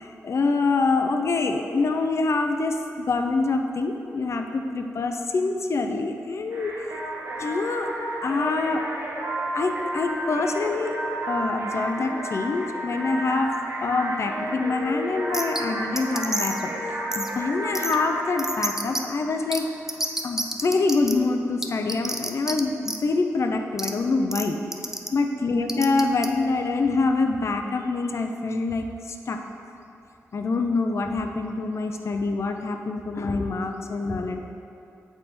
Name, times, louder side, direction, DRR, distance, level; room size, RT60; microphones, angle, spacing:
voice 1, 0.0-6.7 7.4-7.9 8.2-8.8 9.5-11.0 11.3-13.6 13.8-19.6 20.2-24.6 25.1-29.4 30.3-34.4, left 3 dB, 55° left, 5 dB, 0.4 m, -25 dB
sound 1, 6.5-20.0, right 1 dB, 50° right, 1.0 m, -32 dB
sound 2, 15.3-15.6 16.0-16.6 17.1-17.3 17.7-17.9 18.4-19.0 19.5-19.6 19.9-21.1 21.6-22.6 22.8-23.0 23.8-23.9 24.3-24.4 24.7-25.1 25.7-26.3, right 1 dB, 10° right, 0.4 m, -28 dB
8.1 x 3.4 x 4.3 m, 2.7 s
wide cardioid pair, 90°, 6 cm